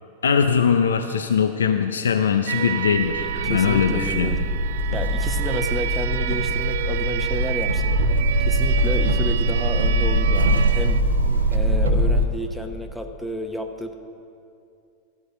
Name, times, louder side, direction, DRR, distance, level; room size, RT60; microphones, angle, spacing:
voice 1, 0.2-4.3, left 7 dB, 80° left, 7 dB, 0.4 m, -21 dB
sound 1, 2.5-11.0, right 11 dB, 65° right, 0.3 m, -29 dB
sound 2, 2.9-12.2, right 1 dB, 85° right, 0.9 m, -22 dB
voice 2, 3.2-4.4 4.9-7.9 8.4-11.0 11.5-13.9, equal, ahead, 4 dB, 0.8 m, -31 dB
12.5 x 5.5 x 7.8 m, 2.5 s
figure-of-eight pair, 95°, 0 cm